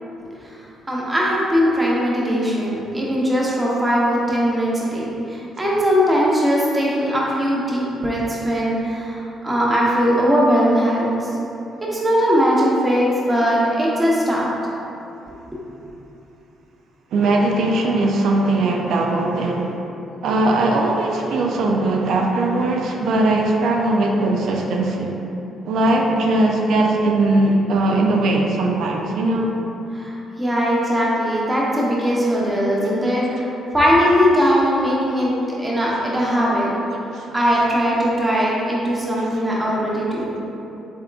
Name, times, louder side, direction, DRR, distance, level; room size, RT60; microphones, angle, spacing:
voice 1, 0.9-5.1 5.6-11.1 11.9-14.5 30.0-33.5 33.7-35.3 35.6-36.7 37.3-40.3, equal, 15° right, -5 dB, 0.8 m, -19 dB
voice 2, 17.1-19.8 20.2-25.2 25.7-29.5 37.1-37.6 39.2-39.4, right 2 dB, 75° right, 1 dB, 0.3 m, -20 dB
3.5 x 3.5 x 2.3 m, 2.9 s
cardioid pair, 90°, 0 cm